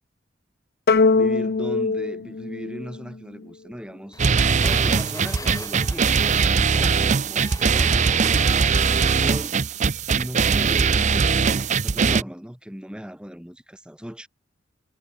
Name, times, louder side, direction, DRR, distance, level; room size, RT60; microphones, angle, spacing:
sound 1, 0.9-3.5, left 4 dB, 55° left, 0.7 m, -22 dB
voice 1, 1.1-4.2 4.6-6.9 7.2-8.2 9.1-9.7 10.1-14.3, equal, 5° right, 1.5 m, -37 dB
sound 2, 4.1-9.6, left 3 dB, 20° left, 0.7 m, -40 dB
sound 3, 4.2-12.2, right 5 dB, 40° right, 0.6 m, -20 dB
head